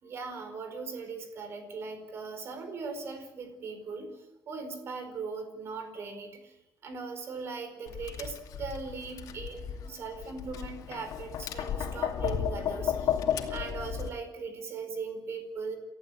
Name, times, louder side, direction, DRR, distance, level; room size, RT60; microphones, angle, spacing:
voice 1, 0.0-6.6 6.8-13.2 13.5-15.8, right 4 dB, 45° right, 7 dB, 4.8 m, -39 dB
Tap, 7.9-14.1, left 9 dB, 80° left, 2.6 m, -33 dB
29.0 x 14.5 x 8.6 m, 0.95 s
cardioid pair, 170°, 6 cm